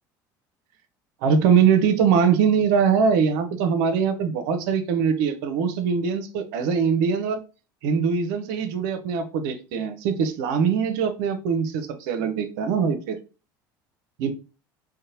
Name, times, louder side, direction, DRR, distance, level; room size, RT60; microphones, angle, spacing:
voice 1, 1.2-7.4 7.8-13.2 14.2-14.3, right 6 dB, 75° right, 8 dB, 0.5 m, -22 dB
2.8 x 2.1 x 2.7 m, 0.33 s
hypercardioid pair, 75°, 10 cm